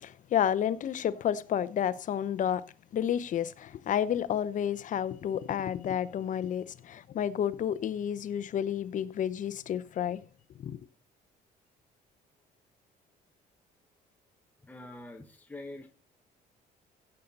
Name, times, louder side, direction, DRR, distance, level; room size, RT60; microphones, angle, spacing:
voice 1, 0.0-2.6 2.9-10.2 10.6-10.8, left 9 dB, 50° left, 0.8 m, -30 dB
voice 2, 14.6-15.9, left 2 dB, 10° left, 1.3 m, -45 dB
15.5 x 6.7 x 4.1 m
cardioid pair, 110°, 17 cm